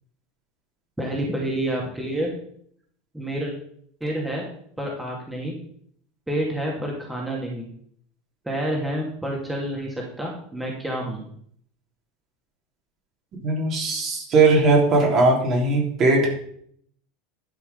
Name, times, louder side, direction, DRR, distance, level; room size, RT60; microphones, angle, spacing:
voice 1, 1.0-2.3 3.1-3.5 4.0-4.4 4.8-5.5 6.3-7.7 8.4-11.2, right 1 dB, 5° right, -2 dB, 2.5 m, -28 dB
voice 2, 13.4-16.3, right 3 dB, 40° right, -1 dB, 3.6 m, -19 dB
11.5 x 5.9 x 5.3 m, 0.64 s
figure-of-eight pair, 75°, 0 cm